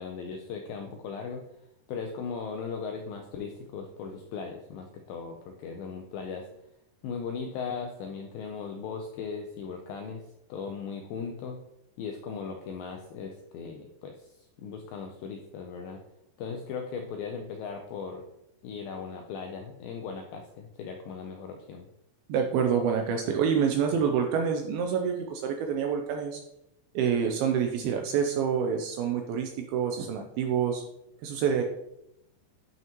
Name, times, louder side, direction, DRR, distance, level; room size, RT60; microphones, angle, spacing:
voice 1, 0.0-1.4 1.9-6.5 7.0-10.2 10.5-11.6 12.0-16.0 16.4-18.2 18.6-21.9, left 5 dB, 85° left, 3 dB, 2.0 m, -38 dB
voice 2, 22.3-26.4 27.0-30.8 31.2-31.6, right 7 dB, 80° right, 4 dB, 2.2 m, -27 dB
9.2 x 5.7 x 2.9 m, 0.82 s
omnidirectional pair, 4.8 m